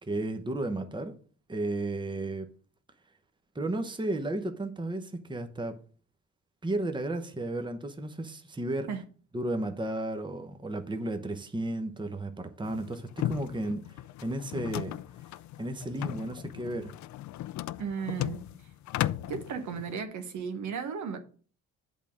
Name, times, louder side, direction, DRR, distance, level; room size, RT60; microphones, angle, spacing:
voice 1, 0.0-1.2 1.5-2.5 3.5-5.8 6.6-8.9 9.3-15.0 15.6-16.9, right 2 dB, 15° right, 0.9 m, -33 dB
sound 1, 12.6-20.0, left 14 dB, 70° left, 0.4 m, -36 dB
voice 2, 17.8-18.4 19.2-21.2, right 6 dB, 70° right, 1.2 m, -35 dB
8.2 x 3.6 x 6.3 m
cardioid pair, 90°, 30 cm